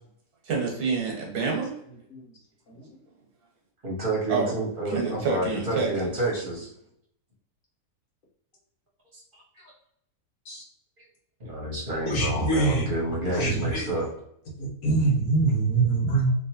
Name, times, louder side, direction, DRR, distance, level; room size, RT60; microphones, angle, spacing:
voice 1, 0.5-1.7 4.3-4.5 4.8-6.1, right 4 dB, 90° right, 0 dB, 1.5 m, -27 dB
voice 2, 3.8-6.7 11.4-14.1 16.1-16.2, right 1 dB, 35° right, -4 dB, 1.3 m, -29 dB
voice 3, 12.0-12.9 13.3-13.9 14.6-16.3, right 3 dB, 60° left, -4 dB, 1.4 m, -24 dB
3.0 x 2.9 x 2.8 m, 0.72 s
omnidirectional pair, 1.6 m